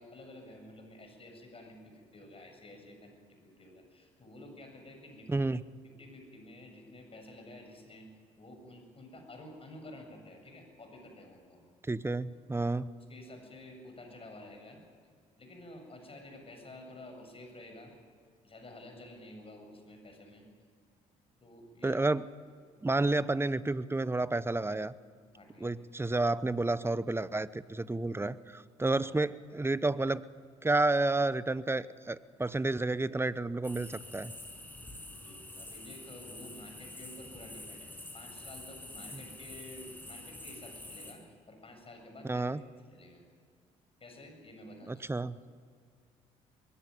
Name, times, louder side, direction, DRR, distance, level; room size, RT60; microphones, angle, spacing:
voice 1, 0.0-5.3 5.8-8.1 8.4-11.6 13.1-14.8 15.4-17.9 18.4-20.4 21.4-22.0 22.8-23.0 25.3-25.7 28.9-29.0 35.1-42.4 42.9-43.2 44.0-45.0, left 1 dB, 35° left, 4 dB, 7.6 m, -51 dB
voice 2, 5.3-5.6 11.9-12.9 21.8-22.3 22.8-24.9 25.6-30.2 30.6-34.3 42.2-42.6 44.9-45.4, right 2 dB, 15° right, 17 dB, 0.9 m, -30 dB
sound 1, 33.6-41.1, left 1 dB, 10° left, 7.0 m, -47 dB
21.5 x 16.5 x 9.8 m, 2.1 s
hypercardioid pair, 60°, 16 cm